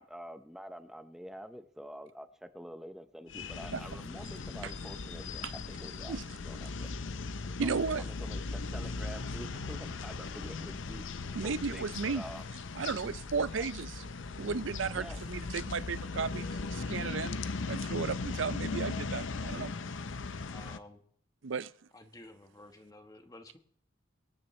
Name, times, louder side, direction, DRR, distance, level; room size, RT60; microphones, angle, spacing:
voice 1, 0.0-6.9 7.6-11.0 11.4-12.4 13.6-13.7 14.9-15.2, equal, ahead, 10 dB, 0.6 m, -47 dB
sound 1, 3.3-20.8, left 4 dB, 70° left, 0.7 m, -38 dB
voice 2, 7.6-8.0 11.4-12.2 12.8-13.9 14.4-16.5 16.7-17.4 17.7-19.7 21.4-21.7, right 5 dB, 70° right, 17 dB, 0.5 m, -34 dB
voice 3, 20.5-21.0 21.9-23.6, left 1 dB, 20° left, 6 dB, 1.3 m, -52 dB
24.0 x 9.9 x 3.2 m, 0.64 s
head